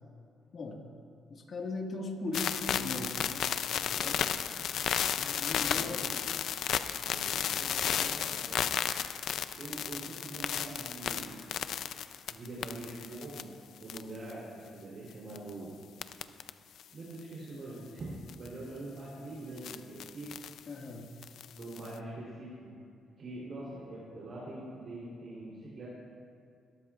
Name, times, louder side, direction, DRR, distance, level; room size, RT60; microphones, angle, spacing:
voice 1, 1.3-3.5 3.7-4.1 5.2-6.0 20.7-21.1, left 2 dB, 50° left, 1 dB, 1.8 m, -38 dB
sound 1, 2.3-13.4 13.8-14.3 15.3-15.5 16.0-16.5 16.8-16.9 18.3-18.5 19.6-20.6 21.2-21.9, left 9 dB, 70° left, 0.5 m, -33 dB
voice 2, 3.9-4.6 5.6-6.1 7.0-8.8 9.6-11.4 12.3-13.5 13.8-15.7 16.9-20.4 21.6-22.8 23.2-25.9, right 2 dB, 55° right, -7 dB, 3.5 m, -44 dB
21.0 x 13.5 x 2.5 m, 2.4 s
cardioid pair, 90°, 0 cm